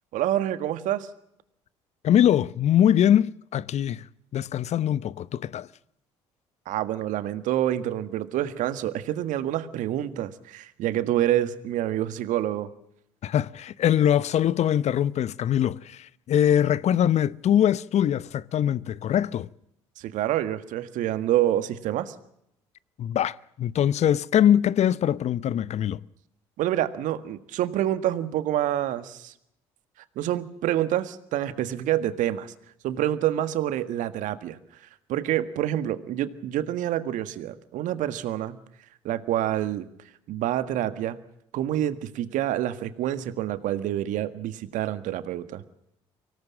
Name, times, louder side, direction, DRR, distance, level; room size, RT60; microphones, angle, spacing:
voice 1, 0.1-1.1 6.6-12.7 20.0-22.1 26.6-29.3 30.1-32.5 32.8-38.6 39.0-39.9 40.3-41.2 41.5-45.6, right 12 dB, 65° right, 1.7 m, -27 dB
voice 2, 2.0-4.0 4.3-5.7 13.2-19.5 23.0-26.0, left 10 dB, 50° left, 0.8 m, -22 dB
24.5 x 18.0 x 7.5 m
hypercardioid pair, 55°, 14 cm